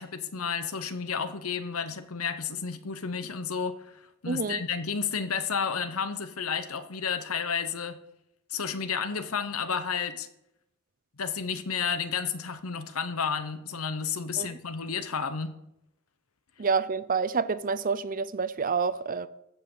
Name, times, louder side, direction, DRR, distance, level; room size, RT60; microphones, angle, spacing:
voice 1, 0.0-3.9 4.2-8.0 8.5-10.3 11.2-15.6, left 6 dB, 85° left, 1.0 m, -31 dB
voice 2, 4.3-4.6 14.4-14.5 16.6-19.3, right 5 dB, 40° right, 0.5 m, -28 dB
15.0 x 5.6 x 6.7 m
head